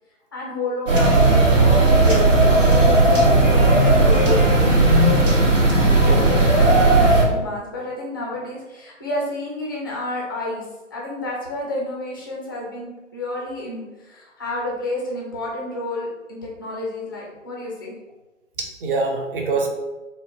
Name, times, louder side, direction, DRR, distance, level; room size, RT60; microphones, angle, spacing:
voice 1, 0.3-4.5 5.7-17.9, left 2 dB, 20° left, -3 dB, 0.3 m, -30 dB
sound 1, 0.9-7.2, right 2 dB, 80° right, 1.0 m, -15 dB
voice 2, 6.0-6.3 18.6-19.7, right 3 dB, 45° right, 1 dB, 0.7 m, -24 dB
4.1 x 2.0 x 2.7 m, 1.1 s
figure-of-eight pair, 125°, 38 cm